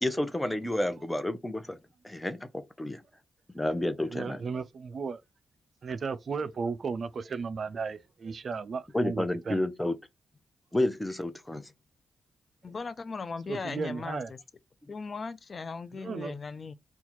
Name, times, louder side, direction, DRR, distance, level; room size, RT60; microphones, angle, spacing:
voice 1, 0.0-1.8 2.0-2.5 2.8-3.0 3.5-4.4 8.9-10.0 10.7-11.7, left 1 dB, 10° left, 0.7 m, -30 dB
voice 2, 4.1-5.2 5.8-9.7 13.5-14.3 15.9-16.4, right 5 dB, 60° right, 0.4 m, -35 dB
voice 3, 12.6-14.4 14.9-16.7, left 4 dB, 50° left, 0.4 m, -38 dB
2.8 x 2.3 x 4.2 m
hypercardioid pair, 45°, 0 cm